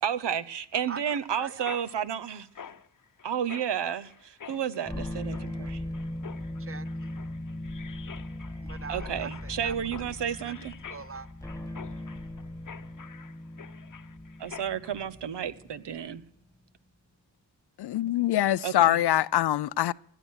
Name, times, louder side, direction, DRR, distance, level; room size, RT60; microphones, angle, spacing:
voice 1, 0.0-2.5 3.2-5.8 8.9-10.7 14.4-16.2 18.6-19.0, right 9 dB, 60° right, 1.0 m, -32 dB
Mechanisms, 0.7-14.9, left 7 dB, 40° left, 1.0 m, -48 dB
voice 2, 0.9-1.7 6.6-7.1 8.6-11.3, right 5 dB, 30° right, 0.8 m, -43 dB
sound 1, 4.8-16.2, left 1 dB, 5° left, 1.6 m, -39 dB
voice 3, 17.8-19.9, left 13 dB, 55° left, 0.5 m, -24 dB
17.5 x 11.5 x 6.4 m
supercardioid pair, 45°, 48 cm